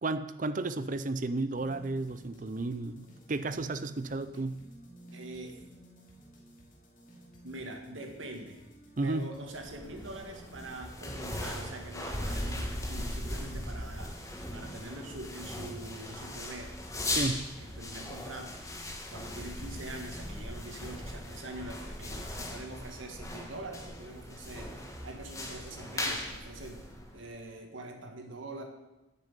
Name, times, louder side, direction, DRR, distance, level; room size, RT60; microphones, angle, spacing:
voice 1, 0.0-4.6 9.0-9.3 17.1-17.4, right 2 dB, 40° right, 12 dB, 0.5 m, -33 dB
sound 1, 1.5-11.5, equal, 40° left, 2.3 m, -55 dB
voice 2, 5.1-5.6 7.4-8.6 9.0-16.7 17.6-18.6 19.1-24.7 25.0-26.8 27.1-28.6, right 2 dB, 80° right, 3 dB, 1.8 m, -44 dB
sound 2, 9.5-27.4, left 1 dB, 15° left, 1.5 m, -39 dB
8.6 x 6.8 x 8.2 m, 1.0 s
head